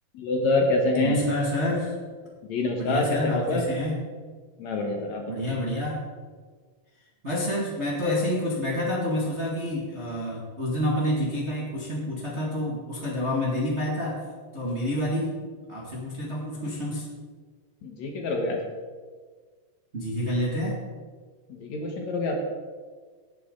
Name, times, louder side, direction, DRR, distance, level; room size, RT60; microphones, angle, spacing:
voice 1, 0.1-1.2 2.5-3.6 4.6-5.3 17.8-18.6 21.5-22.4, left 2 dB, 60° left, 1 dB, 2.3 m, -26 dB
voice 2, 1.0-1.9 2.8-4.0 5.3-6.0 7.2-14.2 14.5-15.3 15.7-17.1 19.9-20.8, left 1 dB, 25° right, -4 dB, 1.6 m, -28 dB
19.0 x 8.5 x 3.9 m, 1.5 s
omnidirectional pair, 3.9 m